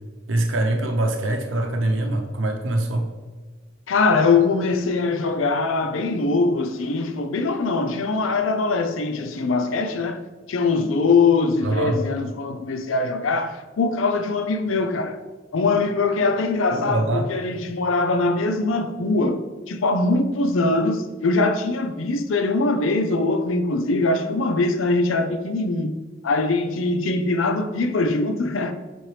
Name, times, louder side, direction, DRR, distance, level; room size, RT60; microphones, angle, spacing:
voice 1, 0.3-3.1 11.6-12.0 16.7-17.3, right 1 dB, 80° right, 0.7 m, -23 dB
voice 2, 3.9-10.2 10.5-15.2 15.5-19.4 19.7-26.0 26.2-28.7, left 3 dB, 85° left, 0.6 m, -22 dB
7.5 x 4.3 x 3.3 m
head